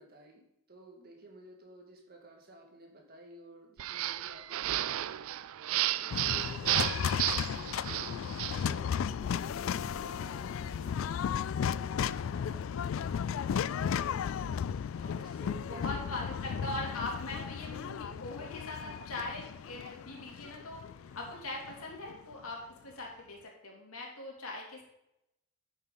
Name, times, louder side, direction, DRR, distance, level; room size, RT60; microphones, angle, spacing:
voice 1, 0.0-5.2 5.8-14.4 15.0-16.9 17.7-17.9, right 2 dB, 45° right, 2 dB, 2.0 m, -53 dB
sound 1, 3.8-8.7, right 14 dB, 80° right, 0.4 m, -33 dB
sound 2, 6.1-22.3, left 7 dB, 70° left, 0.3 m, -35 dB
voice 2, 15.6-20.8 21.1-24.8, left 2 dB, 90° left, -1 dB, 3.0 m, -41 dB
10.5 x 7.3 x 4.0 m, 0.84 s
head